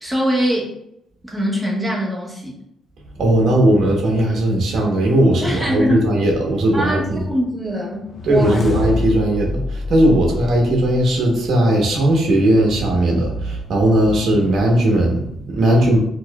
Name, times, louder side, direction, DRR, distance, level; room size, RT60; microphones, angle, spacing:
voice 1, 0.0-0.7 1.3-2.5 5.4-6.0 6.7-8.7, equal, 5° right, -4 dB, 1.2 m, -22 dB
voice 2, 3.2-7.2 8.2-16.0, right 1 dB, 65° right, 0 dB, 1.0 m, -17 dB
sound 1, 8.0-11.2, left 3 dB, 45° left, 0.7 m, -26 dB
4.3 x 2.7 x 2.3 m, 0.76 s
cardioid pair, 90°, 0 cm